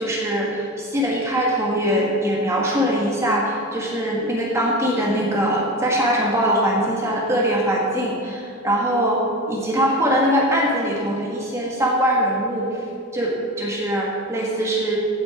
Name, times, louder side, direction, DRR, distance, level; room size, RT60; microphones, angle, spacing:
voice 1, 0.0-9.2 9.5-12.7 13.1-15.0, equal, 15° right, -3 dB, 1.4 m, -22 dB
15.5 x 6.3 x 4.8 m, 2.5 s
head